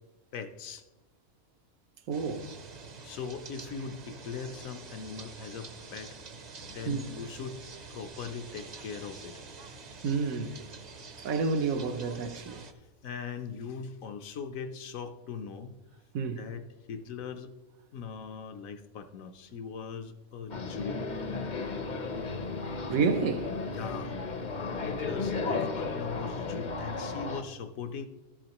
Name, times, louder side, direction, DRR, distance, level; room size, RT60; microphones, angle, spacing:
voice 1, 0.3-0.8 3.0-6.1 6.7-7.6 7.9-9.3 13.0-15.8 16.3-17.5 17.9-21.0 23.7-24.1 24.8-28.1, left 6 dB, 75° left, 1.1 m, -40 dB
sound 1, 2.1-12.7, right 4 dB, 45° right, 0.6 m, -47 dB
voice 2, 2.1-2.5 6.9-7.0 10.0-10.6 11.2-12.6 16.1-16.4 22.9-23.5, right 5 dB, 80° right, 1.1 m, -29 dB
sound 2, 20.5-27.4, left 4 dB, 45° left, 0.7 m, -34 dB
13.5 x 7.3 x 3.0 m
omnidirectional pair, 1.5 m